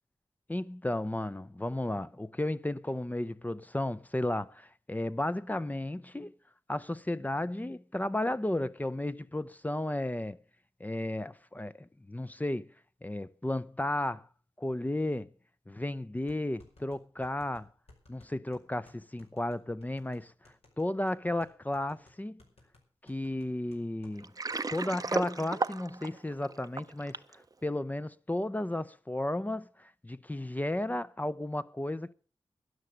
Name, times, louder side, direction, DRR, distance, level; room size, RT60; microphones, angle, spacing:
voice 1, 0.5-6.3 6.7-10.4 10.8-12.7 13.0-14.3 14.6-15.3 15.7-17.7 18.1-22.4 23.0-24.3 24.7-32.1, left 1 dB, 15° left, 0.5 m, -34 dB
sound 1, 15.3-15.4 16.3-24.2 24.5-24.6 24.9-25.3, left 2 dB, 70° left, 5.1 m, -60 dB
Water, 24.2-27.3, right 3 dB, 35° right, 0.6 m, -34 dB
12.5 x 11.0 x 6.3 m
wide cardioid pair, 85°, 11 cm